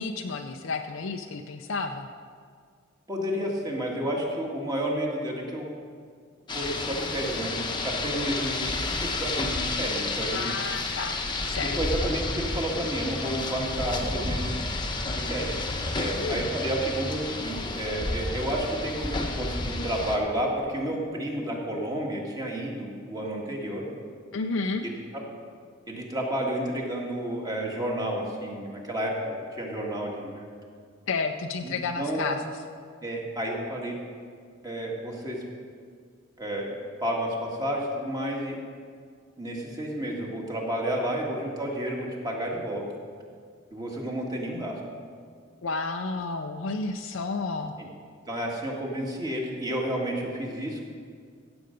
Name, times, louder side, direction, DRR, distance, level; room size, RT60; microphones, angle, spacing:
voice 1, 0.0-2.1 10.3-11.2 11.4-11.8 16.2-16.5 24.3-24.9 31.1-32.4 45.6-47.7, left 4 dB, 70° left, 4 dB, 0.5 m, -31 dB
voice 2, 3.1-5.7 6.5-8.7 9.0-10.5 11.8-14.5 15.1-15.6 15.9-23.9 24.8-25.2 25.9-30.5 31.6-32.3 33.0-34.0 34.6-35.4 36.4-36.7 37.0-38.6 39.4-42.9 43.7-44.8 47.8-47.9 48.3-50.8, right 1 dB, 20° right, -2 dB, 1.9 m, -31 dB
Rain, 6.5-20.2, left 2 dB, 20° left, 1.0 m, -31 dB
16.0 x 8.0 x 5.2 m, 2.1 s
head